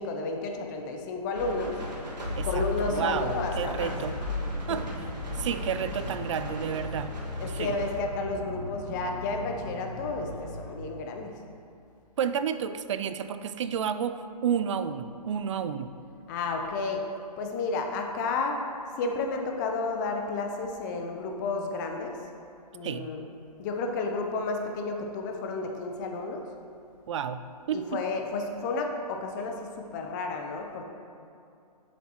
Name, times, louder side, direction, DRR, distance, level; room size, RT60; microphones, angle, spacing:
voice 1, 0.0-1.8 2.4-3.9 7.4-11.3 16.3-17.0 17.4-18.6 19.0-22.2 22.7-23.2 23.6-26.4 27.7-30.8, left 3 dB, 30° left, 3 dB, 0.7 m, -31 dB
sound 1, 1.3-8.0, left 1 dB, 85° right, 1.8 m, -35 dB
voice 2, 2.4-4.2 4.7-4.9 5.3-7.1 7.5-7.8 12.2-15.9 22.8-23.1 27.1-27.4 27.7-28.0, right 8 dB, 45° right, 12 dB, 0.4 m, -31 dB
sound 2, 3.1-10.7, left 1 dB, 50° left, 1.4 m, -39 dB
7.4 x 7.2 x 3.0 m, 2.5 s
hypercardioid pair, 140°, 21 cm